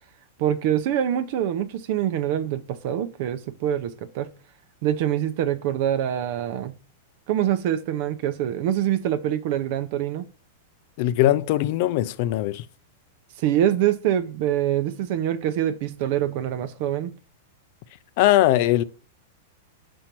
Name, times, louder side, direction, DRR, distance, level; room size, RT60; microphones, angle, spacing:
voice 1, 0.4-4.3 4.8-6.7 7.3-10.3 13.4-17.1, right 11 dB, 55° right, 0.7 m, -25 dB
voice 2, 11.0-12.6 18.2-18.8, left 14 dB, 55° left, 0.5 m, -20 dB
5.4 x 4.4 x 6.1 m
hypercardioid pair, 130°, 0 cm